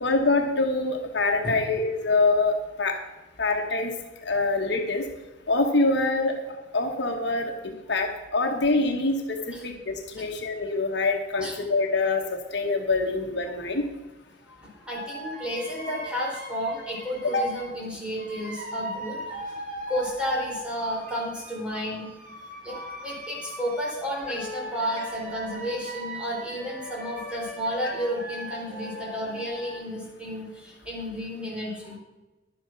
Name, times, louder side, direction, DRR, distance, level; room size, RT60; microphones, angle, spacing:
voice 1, 0.0-2.9 3.4-3.9 4.2-5.0 5.5-6.3 6.7-13.8 17.3-17.5 27.8-27.9, left 3 dB, 60° left, 3 dB, 1.3 m, -25 dB
voice 2, 14.5-19.6 19.9-22.1 22.6-32.0, equal, 5° right, -4 dB, 4.3 m, -32 dB
sound 1, 14.9-17.7 18.1-29.7, right 1 dB, 45° right, 3.6 m, -39 dB
11.5 x 8.9 x 6.0 m, 1.1 s
head